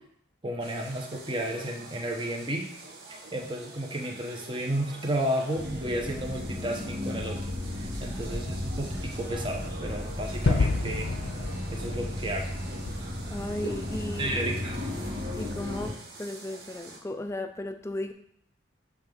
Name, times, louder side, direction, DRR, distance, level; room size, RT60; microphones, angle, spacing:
voice 1, 0.4-2.7 3.3-11.1 11.7-12.5 13.6-13.7 14.2-14.7, right 1 dB, 25° right, 1 dB, 0.9 m, -32 dB
sound 1, 0.6-17.0, right 2 dB, 55° right, 1.1 m, -47 dB
sound 2, 5.6-15.9, left 1 dB, 70° right, 2.0 m, -35 dB
Gunshot gunfire / Fireworks / Boom, 10.5-15.3, left 3 dB, 70° left, 0.5 m, -31 dB
voice 2, 13.2-14.4 15.3-18.1, left 1 dB, 15° left, 7 dB, 0.4 m, -35 dB
6.5 x 3.4 x 5.2 m, 0.70 s
head